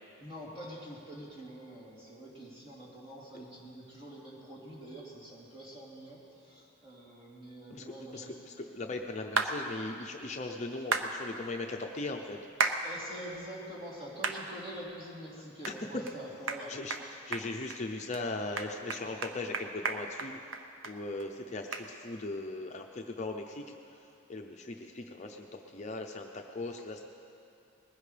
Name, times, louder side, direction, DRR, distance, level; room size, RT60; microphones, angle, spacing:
voice 1, 0.2-8.4 12.8-17.0, right 1 dB, 25° right, -5 dB, 3.0 m, -46 dB
voice 2, 8.1-12.4 15.7-15.8 16.7-17.0 17.3-20.4 20.9-23.6 24.3-27.0, left 2 dB, 35° left, 2 dB, 0.6 m, -39 dB
sound 1, 9.4-9.5 10.9-11.1 12.6-12.8 13.3-13.4 14.2-14.4 14.9-15.0 15.6-15.8 16.1-16.2 16.5-16.6 16.9-17.0 17.3-17.8 18.1-18.2 18.6-20.9 21.2-21.3 21.7-21.9, right 4 dB, 65° right, 0.8 m, -32 dB
20.5 x 16.0 x 3.3 m, 2.7 s
head